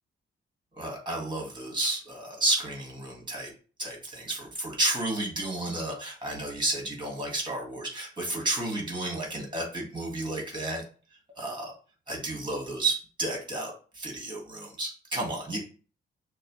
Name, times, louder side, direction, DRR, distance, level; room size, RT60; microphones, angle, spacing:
voice 1, 0.8-3.5 3.8-10.8 11.4-11.7 12.1-15.6, right 2 dB, 20° right, -1 dB, 1.8 m, -31 dB
6.3 x 2.1 x 3.2 m, 0.39 s
cardioid pair, 120°, 21 cm